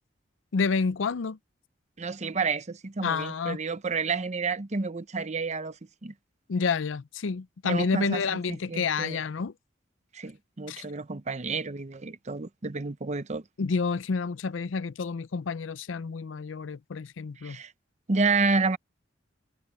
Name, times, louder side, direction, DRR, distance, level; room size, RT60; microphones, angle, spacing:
voice 1, 0.5-1.4 3.0-3.6 6.5-9.5 10.7-10.8 13.6-17.6, left 5 dB, 85° left, 0.5 m, -29 dB
voice 2, 2.0-6.1 7.6-8.4 8.7-9.2 10.1-13.4 17.4-17.7 18.1-18.8, right 4 dB, 40° right, 0.8 m, -30 dB
head